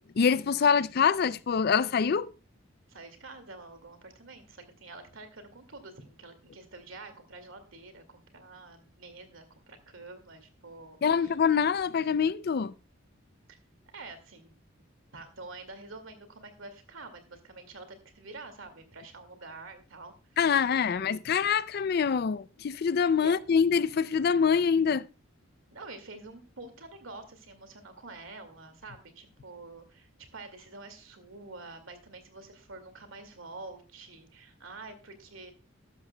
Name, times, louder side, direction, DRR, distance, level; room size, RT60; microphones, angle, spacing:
voice 1, 0.2-2.3 11.0-12.7 20.4-25.0, left 6 dB, 50° left, 0.4 m, -25 dB
voice 2, 2.9-11.4 13.5-13.6 13.9-14.9 15.1-21.1 23.2-23.4 25.7-35.5, right 3 dB, 85° right, 2.2 m, -47 dB
13.0 x 12.0 x 2.2 m
head